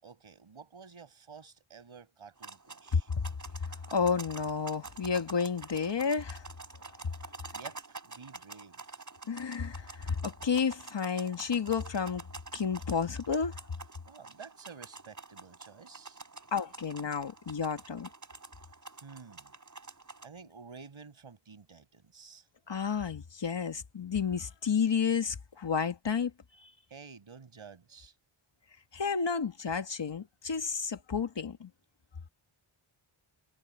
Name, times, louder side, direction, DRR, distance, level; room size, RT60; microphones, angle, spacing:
voice 1, 0.0-3.1 7.2-9.0 14.1-16.2 19.0-19.5 20.2-22.5 26.9-28.2, right 5 dB, 70° right, 5.6 m, -51 dB
sound 1, 2.4-20.3, right 3 dB, 35° right, 5.1 m, -48 dB
voice 2, 2.9-3.2 3.9-6.4 9.3-12.3 12.5-13.5 16.5-18.1 22.7-26.3 26.6-26.7 28.9-31.7, left 6 dB, 60° left, 1.8 m, -31 dB
wide cardioid pair, 100°, 50 cm